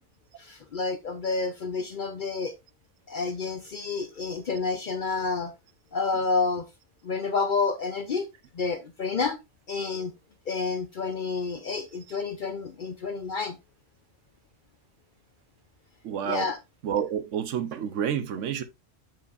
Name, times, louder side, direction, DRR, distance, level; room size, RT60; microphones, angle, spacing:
voice 1, 0.4-2.5 3.1-5.5 5.9-6.6 7.0-8.3 8.5-9.4 9.7-10.1 10.5-13.6 16.2-16.6, left 4 dB, 55° left, 0.6 m, -29 dB
voice 2, 16.0-16.5 16.8-18.6, right 8 dB, 75° right, 1.0 m, -29 dB
7.2 x 5.5 x 2.5 m
omnidirectional pair, 1.3 m